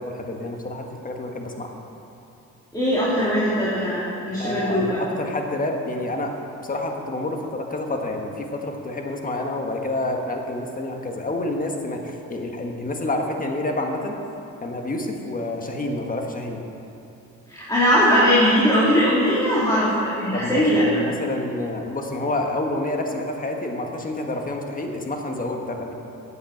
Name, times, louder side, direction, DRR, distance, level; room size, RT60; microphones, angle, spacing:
voice 1, 0.0-1.7 4.4-6.3 6.6-14.2 14.6-16.6 20.3-25.9, left 2 dB, 30° left, 2 dB, 1.5 m, -28 dB
voice 2, 2.7-5.0 17.5-20.8, equal, 10° left, -9 dB, 2.5 m, -20 dB
8.5 x 8.2 x 7.4 m, 2.8 s
cardioid pair, 90°, 30 cm